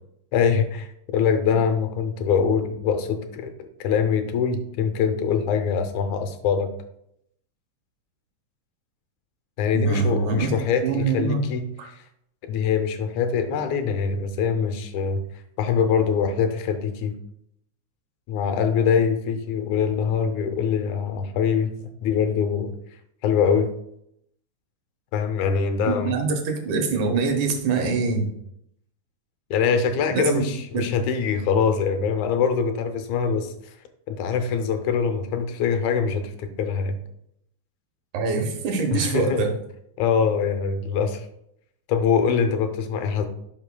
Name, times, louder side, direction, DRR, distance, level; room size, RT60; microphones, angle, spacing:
voice 1, 0.3-6.7 9.6-11.7 12.4-15.2 15.6-17.1 18.3-22.7 23.2-23.7 25.1-26.2 29.5-33.7 34.1-37.0 38.9-39.4 40.0-41.3 41.9-43.3, left 6 dB, 80° left, 7 dB, 2.1 m, -23 dB
voice 2, 9.7-10.5 10.8-11.4 11.8-11.9 25.8-28.3 30.1-30.4 30.7-30.9 38.1-39.5, right 4 dB, 90° right, 4 dB, 2.5 m, -24 dB
11.0 x 5.4 x 2.2 m, 0.75 s
omnidirectional pair, 3.4 m